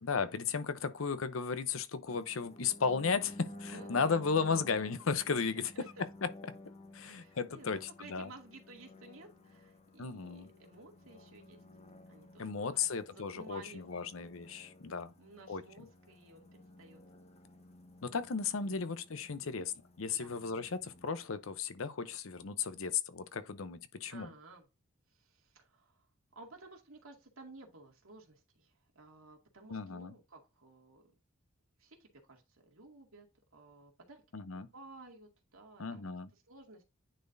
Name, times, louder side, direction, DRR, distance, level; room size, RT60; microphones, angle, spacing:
voice 1, 0.0-5.9 6.2-6.3 6.9-8.3 10.0-10.5 12.4-15.1 15.5-15.6 18.0-19.7 20.0-24.3 29.7-30.1 34.3-34.7 35.8-36.3, left 5 dB, 70° left, 0.7 m, -35 dB
sound 1, 2.1-21.1, left 1 dB, 30° left, 1.0 m, -54 dB
voice 2, 3.7-4.7 5.4-5.9 7.0-11.6 12.1-14.1 15.2-16.5 16.8-17.0 18.6-18.8 19.4-19.7 20.1-20.5 24.1-24.7 25.1-26.1 26.4-31.1 31.8-33.2 33.5-34.2 34.5-36.0 36.3-36.8, right 2 dB, 90° right, 2.2 m, -55 dB
9.8 x 4.3 x 2.6 m
head